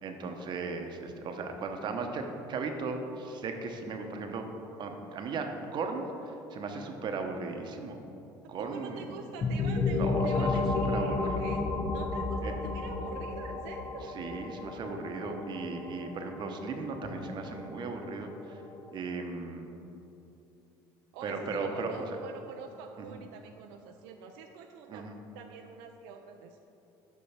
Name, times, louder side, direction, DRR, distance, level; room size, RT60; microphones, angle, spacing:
voice 1, 0.0-4.5 4.8-8.0 8.5-9.1 9.9-10.5 10.9-11.4 12.4-12.5 14.1-18.6 18.9-19.7 21.2-22.2 23.0-23.2 24.9-25.2, right 4 dB, 50° right, 5 dB, 0.8 m, -37 dB
voice 2, 8.6-14.1 21.1-25.1 25.3-26.6, right 6 dB, 85° right, 4 dB, 0.4 m, -45 dB
sound 1, 9.4-19.0, left 3 dB, 40° left, 0.7 m, -33 dB
5.5 x 5.4 x 5.7 m, 2.8 s
supercardioid pair, 90°, 10 cm